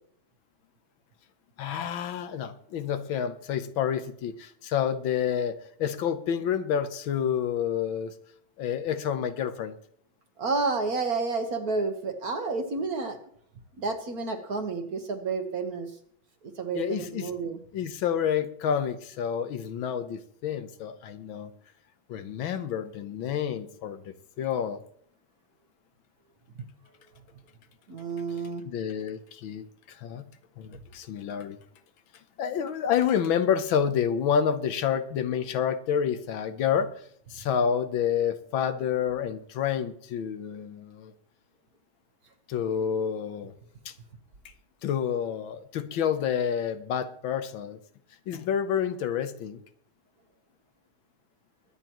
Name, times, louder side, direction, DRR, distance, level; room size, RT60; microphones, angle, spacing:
voice 1, 1.6-8.2 8.6-9.7 16.7-17.3 17.7-21.5 22.1-24.8 28.3-30.2 30.6-31.6 32.4-36.9 37.3-41.1 42.5-43.5 43.8-43.9 44.8-47.8 48.3-49.6, left 8 dB, 70° left, 1.6 m, -29 dB
voice 2, 10.4-13.2 13.8-15.9 16.4-17.6 27.9-28.6, right 4 dB, 50° right, 1.4 m, -30 dB
23.0 x 9.8 x 3.0 m
omnidirectional pair, 2.3 m